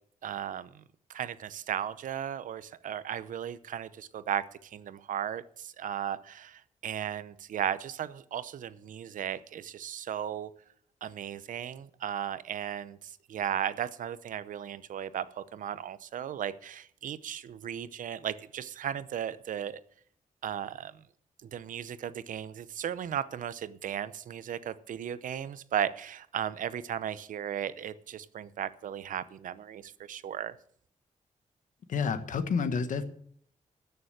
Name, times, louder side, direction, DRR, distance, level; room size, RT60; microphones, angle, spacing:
voice 1, 0.2-0.8 1.1-10.5 11.0-19.8 20.4-20.9 21.4-30.5, right 9 dB, 85° right, 15 dB, 0.7 m, -36 dB
voice 2, 31.9-33.0, left 5 dB, 75° left, 10 dB, 1.4 m, -29 dB
13.0 x 7.0 x 8.9 m, 0.63 s
wide cardioid pair, 175°, 13 cm